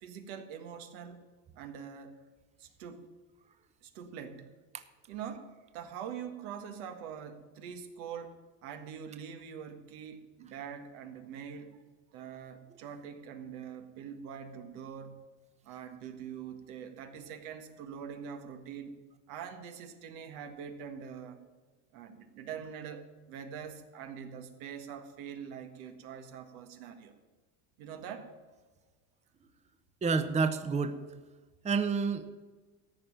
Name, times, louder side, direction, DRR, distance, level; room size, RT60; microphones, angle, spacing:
voice 1, 0.0-1.2 1.5-2.2 2.6-3.1 3.8-4.6 5.1-8.3 8.6-11.8 12.1-15.3 15.6-19.0 19.3-21.4 21.9-27.1 27.8-28.3, right 7 dB, 80° right, 7 dB, 1.7 m, -44 dB
voice 2, 30.0-31.0 31.6-32.3, right 4 dB, 15° right, 10 dB, 0.7 m, -29 dB
14.0 x 5.4 x 8.9 m, 1.4 s
supercardioid pair, 120°, 42 cm